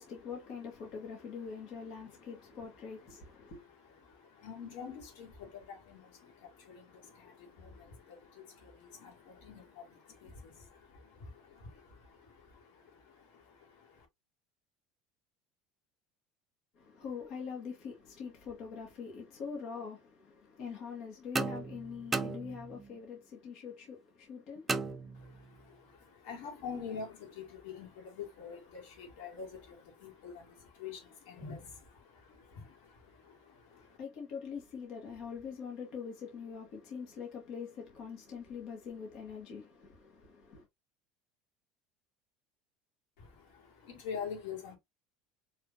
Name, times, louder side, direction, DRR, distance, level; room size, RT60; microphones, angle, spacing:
voice 1, 0.0-3.6 16.8-25.3 33.7-40.7, left 6 dB, 50° left, 1.8 m, -44 dB
voice 2, 3.1-14.1 25.1-34.0 43.2-44.7, left 6 dB, 80° left, 2.3 m, -47 dB
sound 1, 21.3-23.0 24.7-25.6, right 4 dB, 15° right, 0.4 m, -36 dB
4.9 x 3.2 x 2.7 m
cardioid pair, 150°, 0 cm